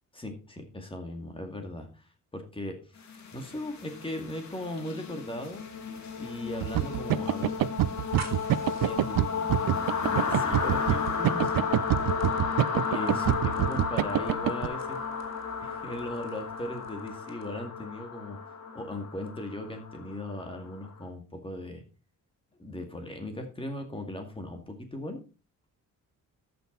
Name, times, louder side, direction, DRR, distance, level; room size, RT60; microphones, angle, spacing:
voice 1, 0.1-2.1 2.3-2.8 3.3-5.6 6.2-7.5 8.8-11.7 12.9-13.1 13.6-15.0 15.6-18.4 18.7-21.8 22.6-25.2, left 1 dB, 15° left, 4 dB, 2.1 m, -38 dB
sound 1, 3.1-20.9, left 5 dB, 55° left, 2.3 m, -33 dB
sound 2, 6.6-14.7, right 13 dB, 85° right, 0.6 m, -26 dB
sound 3, 8.1-17.7, right 4 dB, 50° right, 3.1 m, -50 dB
13.5 x 6.1 x 4.0 m, 0.33 s
cardioid pair, 140°, 33 cm